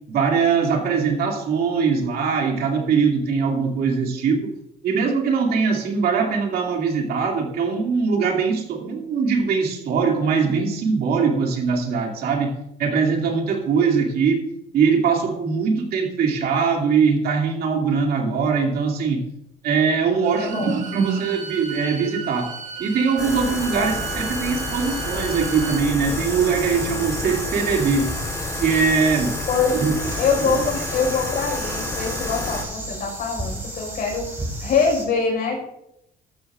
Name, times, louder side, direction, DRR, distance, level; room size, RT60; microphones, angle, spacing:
voice 1, 0.1-4.5 4.8-14.4 14.7-19.2 19.6-22.5 22.8-28.1 28.6-29.3 29.7-29.9 30.4-30.6, right 5 dB, 65° right, 1 dB, 2.5 m, -21 dB
Bowed string instrument, 20.1-25.8, right 7 dB, 45° right, 1.6 m, -35 dB
voice 2, 20.4-20.7 23.7-23.9 29.5-29.8 30.2-34.3 34.6-35.6, left 5 dB, 60° left, 1 dB, 5.1 m, -23 dB
sound 1, 23.2-32.6, left 2 dB, 20° left, 3.7 m, -30 dB
sound 2, 26.0-35.0, right 1 dB, 15° right, 5.0 m, -34 dB
14.5 x 12.5 x 2.5 m, 0.81 s
cardioid pair, 110°, 17 cm